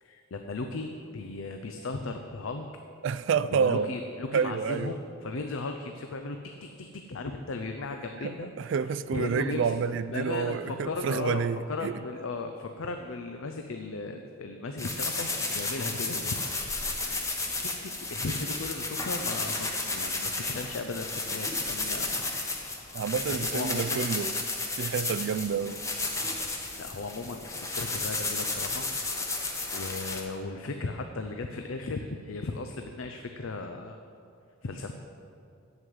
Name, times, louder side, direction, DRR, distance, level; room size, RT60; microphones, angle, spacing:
voice 1, 0.0-2.7 3.4-8.5 9.1-9.8 10.1-16.4 17.0-22.3 23.4-24.1 26.8-28.9 29.2-34.0 34.6-34.9, left 3 dB, 75° left, 5 dB, 0.6 m, -36 dB
voice 2, 3.0-3.9 4.3-4.9 8.2-12.0 22.9-24.4 24.8-25.8, right 6 dB, 60° right, 14 dB, 0.3 m, -29 dB
sound 1, 14.8-30.2, left 3 dB, 15° left, 1.0 m, -32 dB
8.0 x 7.5 x 7.9 m, 2.5 s
head